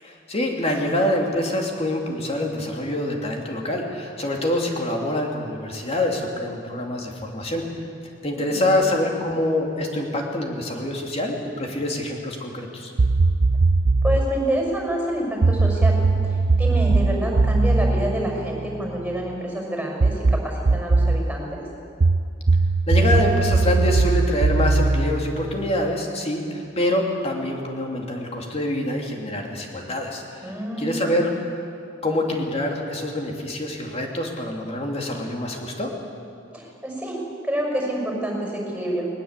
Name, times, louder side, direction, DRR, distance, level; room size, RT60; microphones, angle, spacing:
voice 1, 0.0-7.6 8.2-12.9 22.9-30.5 30.8-31.3 32.0-35.9, left 1 dB, 35° left, 1 dB, 2.9 m, -25 dB
voice 2, 8.3-8.7 14.0-21.6 30.4-31.2 36.5-39.1, right 1 dB, 5° right, -1 dB, 6.1 m, -28 dB
sound 1, 13.0-14.3 15.4-19.1 20.0-21.3 22.0-25.9, right 3 dB, 80° right, 0.7 m, -20 dB
20.5 x 20.0 x 8.2 m, 2.5 s
head